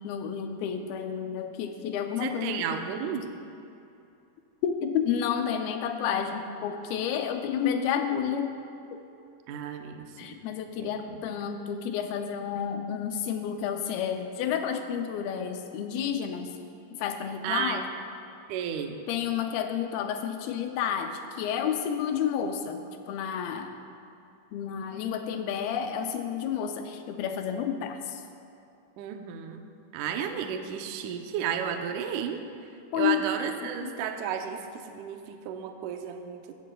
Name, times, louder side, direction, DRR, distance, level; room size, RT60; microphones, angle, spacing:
voice 1, 0.0-2.8 4.6-8.6 8.9-9.0 10.2-16.5 17.0-17.9 19.1-23.8 24.5-28.2 32.9-33.2 33.8-33.9, left 8 dB, 80° left, 6 dB, 2.4 m, -30 dB
voice 2, 2.2-3.3 9.5-10.4 10.8-10.9 17.4-17.8 18.5-19.0 29.0-29.6 29.9-32.4 32.9-36.5, right 8 dB, 85° right, 5 dB, 1.7 m, -33 dB
16.0 x 14.0 x 2.3 m, 2.7 s
omnidirectional pair, 4.5 m